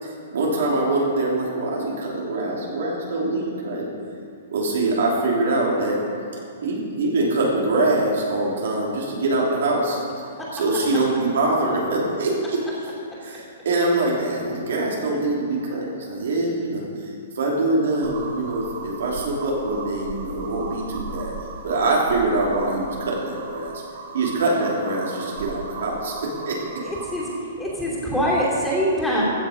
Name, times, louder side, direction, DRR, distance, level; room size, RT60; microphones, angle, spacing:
voice 1, 0.0-3.9 4.5-6.0 6.6-10.0 10.5-12.6 13.2-21.3 21.6-23.7 24.1-26.8, right 2 dB, 80° right, -3 dB, 3.0 m, -24 dB
sound 1, 18.0-27.4, right 4 dB, 50° right, 1.3 m, -37 dB
voice 2, 26.8-29.2, equal, 5° left, -6 dB, 2.9 m, -24 dB
15.0 x 7.3 x 5.1 m, 2.5 s
hypercardioid pair, 150°, 0 cm